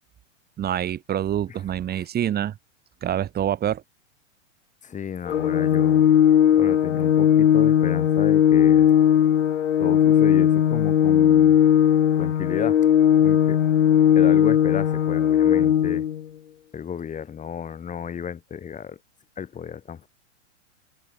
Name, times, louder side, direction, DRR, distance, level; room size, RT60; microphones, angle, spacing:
voice 1, 0.6-2.5 3.0-3.8, right 10 dB, 25° right, 6.0 m, -26 dB
voice 2, 4.8-6.1 6.6-8.9 9.8-11.5 12.2-12.8 13.2-13.6 14.1-16.1 16.7-19.0 19.4-20.1, left 7 dB, 20° left, 5.6 m, -33 dB
Organ, 5.3-16.2, left 10 dB, 75° left, 1.2 m, -18 dB
hypercardioid pair, 110°, 36 cm